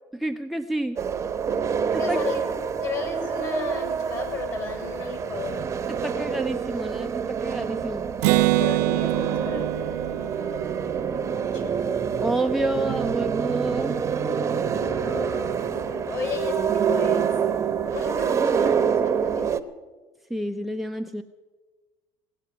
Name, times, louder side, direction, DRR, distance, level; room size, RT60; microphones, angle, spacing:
voice 1, 0.1-1.0 1.9-2.2 5.9-8.1 12.2-14.0 20.3-21.2, right 1 dB, ahead, 8 dB, 0.7 m, -29 dB
sound 1, 1.0-19.6, right 7 dB, 35° right, 1.0 m, -27 dB
voice 2, 2.0-2.4 2.8-5.6 8.4-10.7 11.1-11.8 14.7-17.4 17.8-19.6, left 5 dB, 45° left, 5 dB, 6.8 m, -34 dB
Acoustic guitar, 8.2-11.9, right 19 dB, 90° right, 0.4 m, -25 dB
17.5 x 8.2 x 9.7 m, 1.3 s
supercardioid pair, 95°, 9 cm